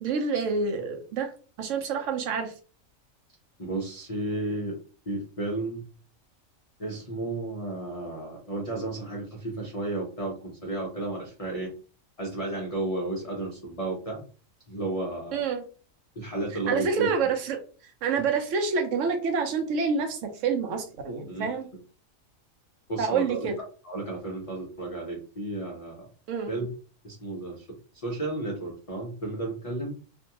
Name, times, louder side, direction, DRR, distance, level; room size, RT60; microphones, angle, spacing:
voice 1, 0.0-1.3 1.6-2.5 15.3-15.6 16.7-21.7 23.0-23.6 26.3-26.6, right 5 dB, 70° right, 5 dB, 0.9 m, -28 dB
voice 2, 3.6-4.8 5.1-5.8 6.8-11.7 12.2-14.2 14.7-15.4 16.2-17.3 21.3-21.6 22.9-23.5 23.8-26.1 26.5-26.7 27.0-30.0, right 2 dB, 45° left, -2 dB, 0.5 m, -33 dB
2.5 x 2.2 x 2.7 m, 0.39 s
omnidirectional pair, 1.4 m